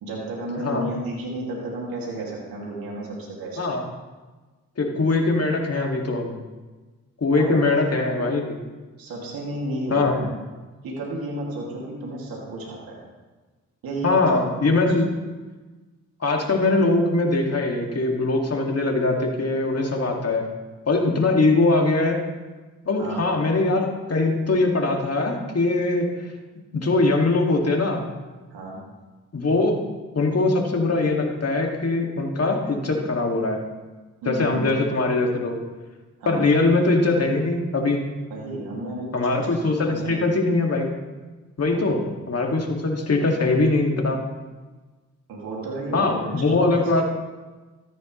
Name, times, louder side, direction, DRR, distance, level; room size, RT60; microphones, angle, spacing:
voice 1, 0.0-3.7 7.3-7.6 8.2-8.3 9.0-10.3 10.8-13.0 13.8-14.4 14.8-15.0 22.9-23.2 28.5-28.8 34.2-34.6 36.2-36.4 38.3-39.3 39.9-40.2 41.7-41.9 45.3-47.0, right 1 dB, 80° right, -3 dB, 2.5 m, -32 dB
voice 2, 4.8-6.3 7.2-8.5 9.9-10.1 14.0-15.1 16.2-20.5 20.9-22.2 22.9-26.1 26.7-28.0 29.3-29.8 30.1-33.6 34.3-35.6 36.3-38.0 39.1-40.9 41.6-44.2 45.9-47.0, left 2 dB, 45° left, 1 dB, 2.3 m, -22 dB
14.0 x 10.0 x 3.2 m, 1.3 s
supercardioid pair, 45°, 35 cm